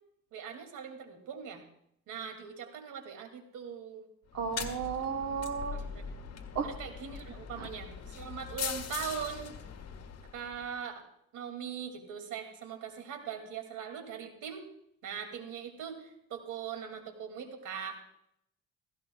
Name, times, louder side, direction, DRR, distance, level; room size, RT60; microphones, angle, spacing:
voice 1, 0.3-1.6 2.1-4.0 5.7-6.0 6.6-9.5 10.3-11.0 11.3-14.7 15.0-18.0, right 7 dB, 80° right, 5 dB, 2.5 m, -41 dB
sound 1, 4.3-10.7, left 7 dB, 60° left, 1.5 m, -41 dB
voice 2, 4.3-5.8 6.5-6.7 7.6-7.7, right 6 dB, 60° right, 4 dB, 1.1 m, -33 dB
16.5 x 15.5 x 2.3 m, 0.73 s
cardioid pair, 90°, 30 cm